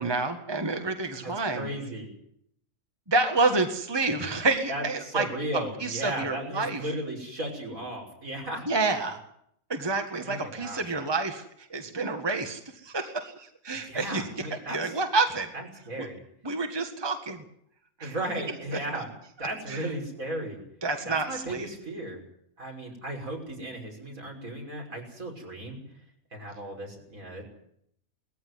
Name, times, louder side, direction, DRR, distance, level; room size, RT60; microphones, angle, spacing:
voice 1, 0.0-1.7 3.1-5.3 5.5-6.8 8.7-9.2 9.7-11.4 11.7-14.2 14.7-15.5 16.0-16.1 16.4-17.4 18.0-18.1 19.7-19.9 20.8-21.7, right 3 dB, 15° right, 5 dB, 1.7 m, -28 dB
voice 2, 1.2-2.1 4.7-8.7 10.2-10.8 13.7-14.9 15.5-16.2 18.0-19.1 19.4-20.6 21.0-22.2 22.6-25.8 26.3-27.4, right 1 dB, 70° right, 1 dB, 6.5 m, -35 dB
20.5 x 15.0 x 9.6 m, 0.71 s
omnidirectional pair, 1.5 m